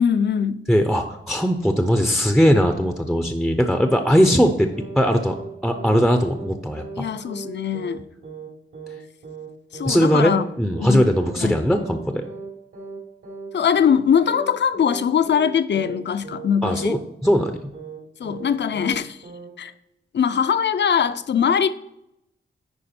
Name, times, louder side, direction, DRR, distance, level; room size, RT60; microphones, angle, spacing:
voice 1, 0.0-0.7 7.0-8.0 9.7-10.4 10.8-11.1 11.4-11.6 13.5-17.0 18.2-19.2 19.6-19.7 20.1-21.7, left 7 dB, 60° left, 0.5 m, -21 dB
voice 2, 0.7-4.7 5.0-5.4 5.6-7.1 9.8-12.3 16.6-17.5, equal, ahead, 0.5 m, -19 dB
sound 1, 3.7-4.5 4.7-5.0 5.2-5.5 5.7-6.0 6.2-6.5 6.7-7.0 7.2-7.5 7.7-8.0 8.2-8.5 8.7-9.0 9.2-9.5 9.7-10.0 10.2-10.5 10.7-11.0 11.2-11.5 11.7-12.0 12.2-12.5 12.7-13.0 13.2-13.5 13.7-14.0 14.2-14.5 14.7-15.0 15.2-15.5 15.7-16.5 16.7-17.0 17.2-17.5 17.7-18.0 18.2-18.5 18.7-19.0 19.2-19.5, right 4 dB, 75° right, 3.4 m, -38 dB
10.5 x 4.5 x 4.3 m
wide cardioid pair, 160°, 20 cm